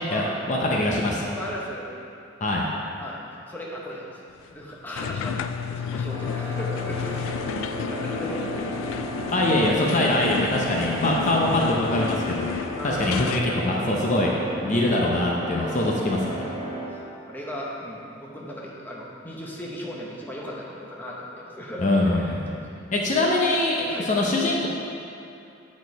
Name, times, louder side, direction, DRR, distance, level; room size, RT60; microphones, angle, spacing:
voice 1, 0.1-1.2 2.4-2.7 9.3-12.4 12.8-14.3 14.6-16.4 21.8-22.5 22.9-24.7, left 1 dB, 40° left, -2 dB, 0.7 m, -23 dB
voice 2, 1.4-1.9 3.0-3.2 3.5-4.2 4.5-7.5 7.9-9.0 12.8-13.1 15.5-15.9 17.3-22.8 23.9-24.1, equal, 10° left, -4 dB, 0.9 m, -37 dB
sound 1, 4.9-13.5, left 6 dB, 85° left, 0.3 m, -31 dB
sound 2, 6.1-16.9, right 1 dB, 20° right, 1.3 m, -34 dB
8.7 x 4.3 x 4.7 m, 2.7 s
head